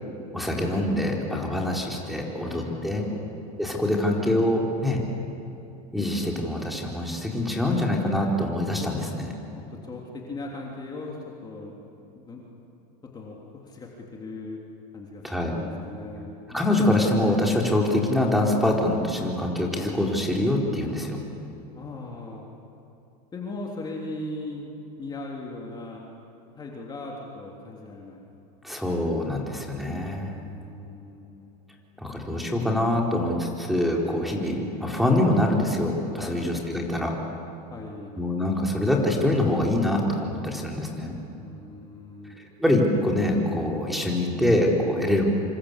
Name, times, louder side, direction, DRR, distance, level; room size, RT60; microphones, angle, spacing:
voice 1, 0.3-3.1 3.6-5.0 5.9-9.2 15.2-15.5 16.5-21.2 28.6-30.4 32.0-37.1 38.1-41.2 42.4-45.2, left 1 dB, ahead, -1 dB, 4.3 m, -24 dB
voice 2, 2.4-3.3 8.8-8.9 9.6-11.8 12.1-12.4 13.0-14.6 14.9-15.2 15.5-16.4 21.7-22.4 23.3-24.7 25.0-26.0 26.6-28.2 30.3-31.5 36.2-36.5 37.7-38.1 41.4-42.4, left 2 dB, 20° left, -2 dB, 3.3 m, -38 dB
26.0 x 26.0 x 8.3 m, 2.9 s
supercardioid pair, 135°, 20 cm